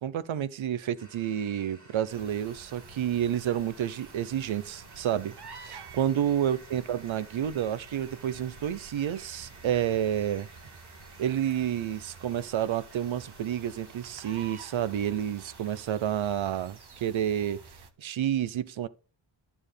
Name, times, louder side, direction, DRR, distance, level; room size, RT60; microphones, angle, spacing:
voice 1, 0.0-10.5 11.2-17.6 18.0-18.9, right 10 dB, 75° right, 0.8 m, -30 dB
sound 1, 1.0-15.8, right 2 dB, 35° right, 2.4 m, -54 dB
sound 2, 2.1-17.9, right 4 dB, 55° right, 1.2 m, -50 dB
11.5 x 7.1 x 3.3 m
cardioid pair, 75°, 47 cm